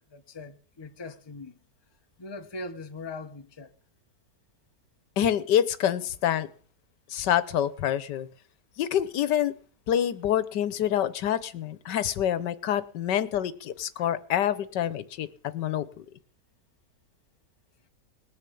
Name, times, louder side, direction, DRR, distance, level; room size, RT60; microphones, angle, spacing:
voice 1, 0.0-1.6 2.2-3.7 14.0-14.1, left 2 dB, 20° left, 0.9 m, -41 dB
voice 2, 5.2-6.5 7.1-8.3 8.8-9.5 9.9-15.3 15.5-15.9, left 10 dB, 80° left, 1.5 m, -26 dB
20.0 x 7.0 x 8.5 m
omnidirectional pair, 1.8 m